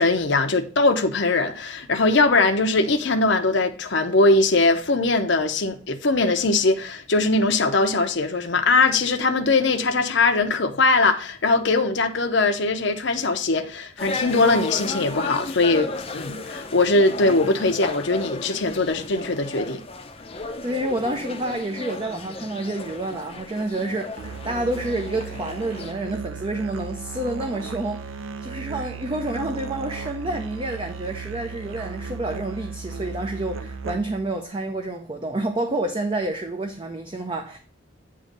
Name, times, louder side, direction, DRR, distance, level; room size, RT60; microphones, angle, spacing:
voice 1, 0.0-19.8, left 3 dB, 60° left, 0.8 m, -21 dB
sound 1, 14.0-25.9, left 3 dB, 30° left, 0.6 m, -34 dB
voice 2, 20.3-37.6, right 1 dB, 25° right, 0.5 m, -29 dB
Musical instrument, 24.2-34.3, right 5 dB, 80° right, 0.6 m, -36 dB
8.5 x 3.1 x 5.2 m
head